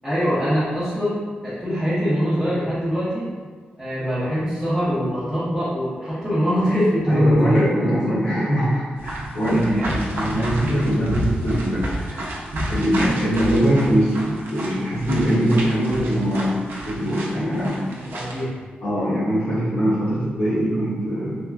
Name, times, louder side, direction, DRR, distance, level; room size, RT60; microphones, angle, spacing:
voice 1, 0.0-3.2 3.8-8.4 9.5-10.0 17.9-18.5, equal, ahead, -14 dB, 0.8 m, -23 dB
voice 2, 7.1-12.4 12.7-16.5 16.9-18.0 18.8-21.4, equal, 90° left, -13 dB, 0.9 m, -22 dB
sound 1, 9.0-18.4, right 1 dB, 85° right, 0.5 m, -30 dB
3.2 x 2.2 x 2.3 m, 1.5 s
wide cardioid pair, 115°, 4 cm